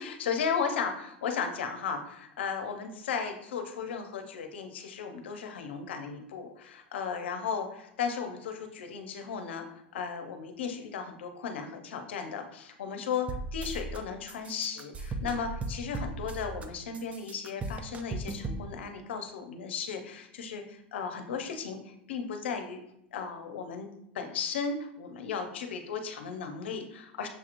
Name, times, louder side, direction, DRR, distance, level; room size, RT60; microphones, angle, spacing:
voice 1, 0.0-22.8 23.1-23.9 24.1-27.3, left 6 dB, 80° left, 6 dB, 0.7 m, -35 dB
sound 1, 13.3-14.0 14.3-16.7 16.9-18.6, right 3 dB, 20° right, 0.5 m, -37 dB
6.5 x 2.9 x 2.5 m, 0.78 s
hypercardioid pair, 105°, 6 cm